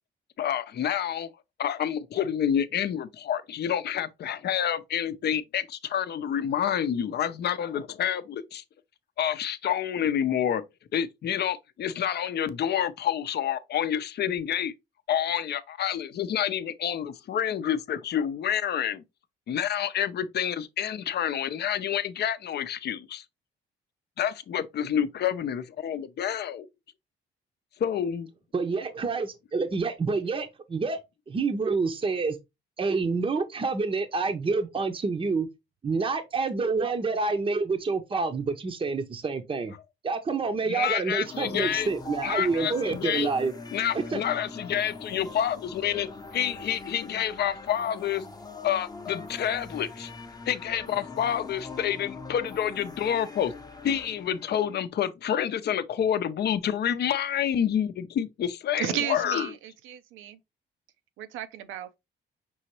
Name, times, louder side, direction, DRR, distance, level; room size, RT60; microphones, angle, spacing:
voice 1, 0.4-1.3 1.6-8.6 9.2-10.6 10.9-14.7 15.1-19.0 19.5-23.2 24.2-26.7 27.8-28.3 40.6-41.9 42.2-43.3 43.7-48.2 48.6-50.1 50.5-53.5 53.8-59.5, left 9 dB, 55° left, 0.6 m, -28 dB
voice 2, 28.5-31.0 31.3-32.4 32.8-35.5 35.8-39.7 40.0-43.5 43.9-44.2, right 4 dB, 25° right, 0.6 m, -28 dB
sound 1, 41.3-54.8, left 3 dB, 20° left, 0.7 m, -42 dB
voice 3, 58.8-60.4 61.2-62.0, right 10 dB, 85° right, 0.6 m, -34 dB
5.4 x 2.9 x 3.0 m
cardioid pair, 90°, 20 cm